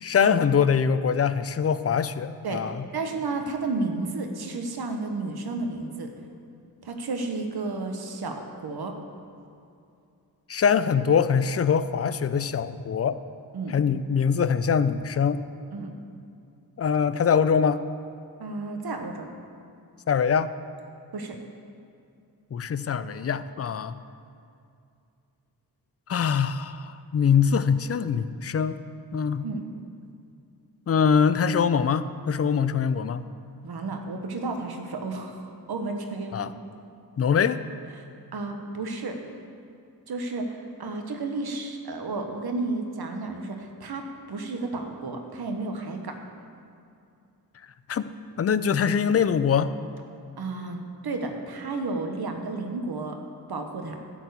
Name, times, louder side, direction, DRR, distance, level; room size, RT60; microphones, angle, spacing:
voice 1, 0.0-2.8 10.5-13.2 13.7-15.4 16.8-17.8 20.1-20.5 22.5-24.0 26.1-28.8 29.1-29.4 30.9-33.3 36.3-36.5 37.2-37.6 47.9-48.1 48.4-49.7, left 7 dB, 40° left, 13 dB, 0.5 m, -23 dB
voice 2, 2.9-6.1 6.8-9.0 13.5-13.8 15.7-15.9 18.4-19.3 21.1-21.4 29.4-29.7 33.6-36.5 38.0-38.1 38.3-39.2 40.1-46.2 50.4-53.2 53.5-54.0, right 3 dB, 70° right, 4 dB, 1.2 m, -32 dB
12.0 x 4.6 x 8.1 m, 2.5 s
cardioid pair, 70°, 39 cm